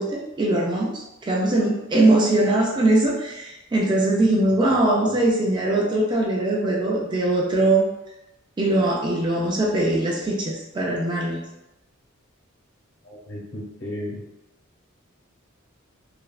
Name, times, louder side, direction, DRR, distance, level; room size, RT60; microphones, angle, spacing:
voice 1, 0.0-7.9 8.6-11.4, right 2 dB, 20° right, -2 dB, 0.3 m, -21 dB
voice 2, 13.0-14.2, left 1 dB, 55° left, -6 dB, 1.1 m, -34 dB
3.0 x 2.4 x 2.3 m, 0.93 s
head